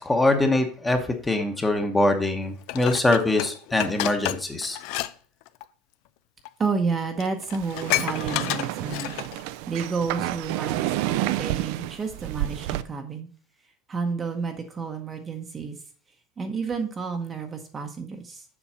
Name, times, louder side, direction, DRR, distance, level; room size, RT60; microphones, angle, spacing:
voice 1, 0.0-4.8, left 2 dB, 10° left, 5 dB, 1.0 m, -23 dB
Dishes pots and pans, 2.7-5.1 5.4-5.6 6.4-6.5 6.9-7.0 7.2-9.4 9.9-10.0, left 16 dB, 55° left, 0.5 m, -30 dB
voice 2, 6.6-9.1 9.4-13.3 13.9-15.8 16.4-18.4, right 5 dB, 20° right, 5 dB, 0.9 m, -30 dB
sound 1, 7.5-12.8, right 15 dB, 60° right, 0.5 m, -30 dB
7.2 x 5.4 x 5.6 m, 0.42 s
supercardioid pair, 160°, 0 cm